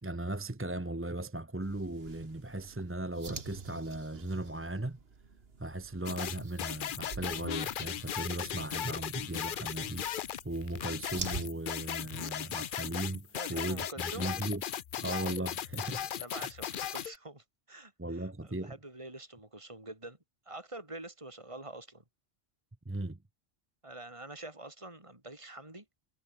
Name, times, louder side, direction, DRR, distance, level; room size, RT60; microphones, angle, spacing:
voice 1, 0.0-5.0 5.6-13.8 14.2-14.6 15.0-16.1 16.4-16.5 18.0-18.8 22.9-23.2, right 2 dB, 15° right, 0.9 m, -37 dB
sound 1, 1.6-11.5, right 4 dB, 70° right, 2.0 m, -48 dB
sound 2, 6.1-17.1, left 10 dB, 60° left, 0.7 m, -37 dB
voice 2, 13.3-14.3 16.1-20.2 20.5-22.0 23.8-25.9, right 2 dB, 30° right, 3.9 m, -46 dB
omnidirectional pair, 1.1 m